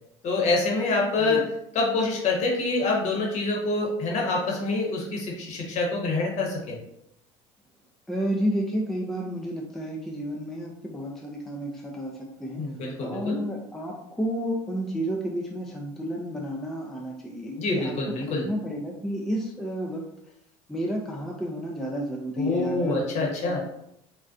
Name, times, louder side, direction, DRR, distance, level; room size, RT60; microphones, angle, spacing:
voice 1, 0.2-1.5 1.7-6.8 12.6-13.4 17.6-18.5 22.4-23.6, left 3 dB, 45° left, -1 dB, 0.9 m, -26 dB
voice 2, 8.1-12.6 13.0-20.0 20.7-23.6, equal, ahead, -1 dB, 0.3 m, -31 dB
2.4 x 2.2 x 2.4 m, 0.78 s
supercardioid pair, 95°, 16 cm